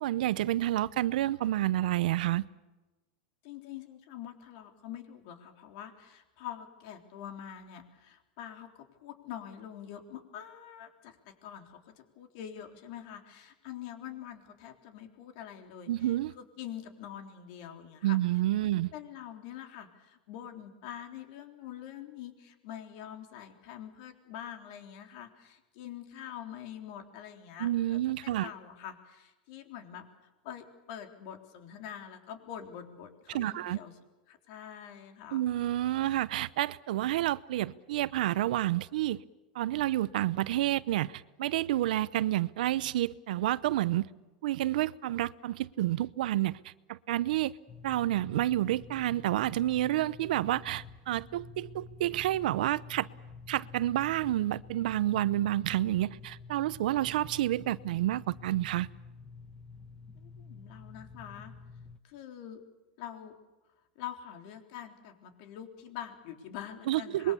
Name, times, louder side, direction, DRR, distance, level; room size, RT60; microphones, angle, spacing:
voice 1, 0.0-2.4 15.9-16.3 18.0-18.9 27.6-28.5 33.3-33.8 35.3-39.2 39.5-44.1 44.4-47.5 47.8-53.1 53.5-58.9 66.9-67.3, right 14 dB, 75° right, 0.8 m, -29 dB
voice 2, 3.4-18.4 18.9-30.0 30.4-33.9 34.3-35.4 60.2-61.5 62.0-62.6 63.0-63.3 64.0-67.3, left 10 dB, 55° left, 3.7 m, -45 dB
sound 1, 47.7-62.0, left 4 dB, 15° left, 1.0 m, -49 dB
26.5 x 22.5 x 7.0 m
supercardioid pair, 145°, 5 cm